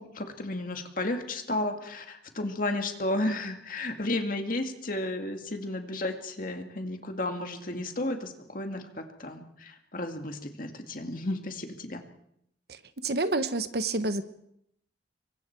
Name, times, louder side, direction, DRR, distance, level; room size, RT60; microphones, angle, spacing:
voice 1, 0.0-12.0, left 2 dB, 50° left, 5 dB, 2.1 m, -33 dB
voice 2, 13.0-14.2, right 2 dB, 60° right, 11 dB, 1.1 m, -28 dB
27.5 x 23.5 x 4.6 m, 0.75 s
head